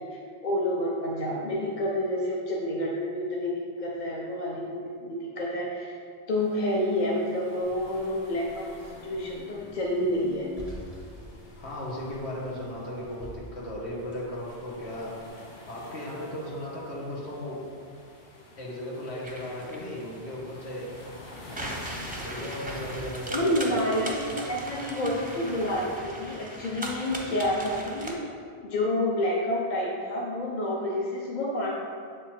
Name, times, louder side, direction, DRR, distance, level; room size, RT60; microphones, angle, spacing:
voice 1, 0.0-5.9 6.3-10.5 23.3-28.1 28.6-31.7, left 1 dB, 50° left, -4 dB, 0.8 m, -29 dB
sound 1, 6.3-26.0, left 2 dB, 65° left, 1.1 m, -49 dB
Car, 7.6-15.3, right 1 dB, 35° left, 1.4 m, -48 dB
voice 2, 11.6-15.2 15.7-17.6 18.6-20.9 22.2-23.9, left 1 dB, 90° left, -5 dB, 1.4 m, -36 dB
sound 2, 19.2-28.1, right 1 dB, 10° right, 0.5 m, -38 dB
7.2 x 3.4 x 4.3 m, 2.3 s
omnidirectional pair, 1.1 m